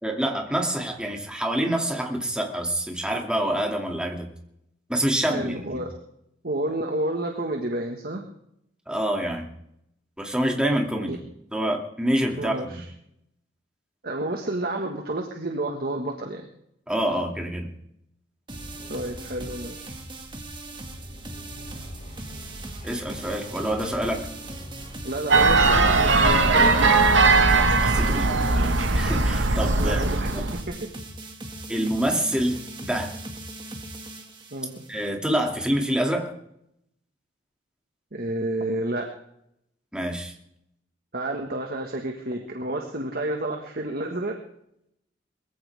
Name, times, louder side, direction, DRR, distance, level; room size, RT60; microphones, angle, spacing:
voice 1, 0.0-4.3 4.9-5.6 8.9-9.5 10.2-11.2 11.5-12.8 16.9-17.7 22.8-24.3 26.3-26.5 27.5-30.4 31.7-33.1 34.9-36.3 39.9-40.3, right 1 dB, 5° right, 1 dB, 2.5 m, -27 dB
voice 2, 5.2-5.9 6.4-8.2 11.1-11.2 12.4-12.8 14.0-16.5 18.9-20.0 25.0-27.6 28.1-28.2 29.8-30.7 34.5-34.8 38.1-39.1 41.1-44.4, right 1 dB, 55° right, 3 dB, 1.7 m, -30 dB
sound 1, 18.5-28.1, equal, 40° left, 7.0 m, -43 dB
sound 2, 18.5-35.1, right 2 dB, 25° right, 2.1 m, -40 dB
sound 3, 25.3-30.6, right 3 dB, 75° right, 1.6 m, -19 dB
21.5 x 15.5 x 3.6 m, 0.75 s
head